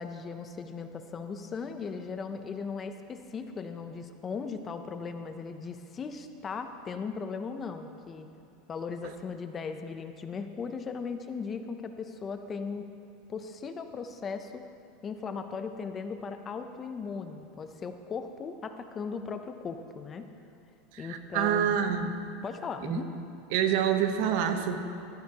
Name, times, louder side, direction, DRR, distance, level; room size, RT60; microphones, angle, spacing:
voice 1, 0.0-8.3 8.7-12.9 13.3-14.6 15.0-20.2 21.0-21.8 22.4-23.1, left 5 dB, 25° left, 8 dB, 0.6 m, -37 dB
voice 2, 20.9-22.1 22.8-23.0 23.5-24.8, right 9 dB, 65° right, 7 dB, 0.8 m, -27 dB
14.0 x 11.0 x 2.9 m, 2.7 s
supercardioid pair, 130°, 0 cm